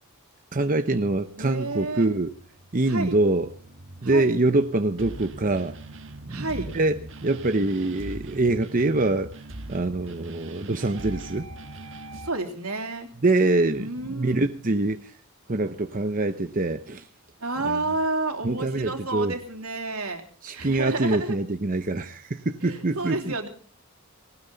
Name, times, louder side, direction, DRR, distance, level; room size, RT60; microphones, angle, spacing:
voice 1, 0.5-2.3 2.7-3.5 4.0-5.8 6.3-9.3 9.7-11.5 13.2-15.1 15.5-17.1 17.6-17.8 18.4-19.3 20.4-23.4, right 2 dB, 35° right, 7 dB, 0.8 m, -24 dB
sound 1, 0.6-12.3, right 2 dB, 60° right, 1.7 m, -42 dB
voice 2, 1.4-2.1 2.9-3.2 4.0-4.3 6.3-6.7 12.2-13.1 13.7-14.4 17.4-20.2 20.5-21.4 22.6-23.5, right 2 dB, 75° right, 5 dB, 3.2 m, -30 dB
19.5 x 18.5 x 4.0 m, 0.43 s
head